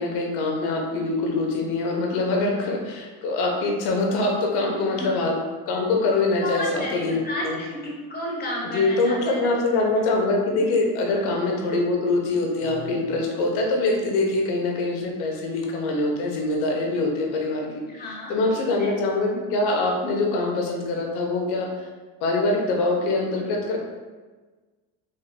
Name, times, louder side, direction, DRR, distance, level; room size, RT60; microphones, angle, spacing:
voice 1, 0.0-5.4 5.7-7.2 7.4-7.6 8.7-17.8 18.3-21.7 22.2-23.8, left 2 dB, 70° left, 1 dB, 0.9 m, -24 dB
voice 2, 6.4-9.4 11.1-11.2 17.9-18.9, left 1 dB, 20° left, -4 dB, 1.4 m, -33 dB
4.0 x 3.8 x 2.2 m, 1.3 s
supercardioid pair, 95°, 41 cm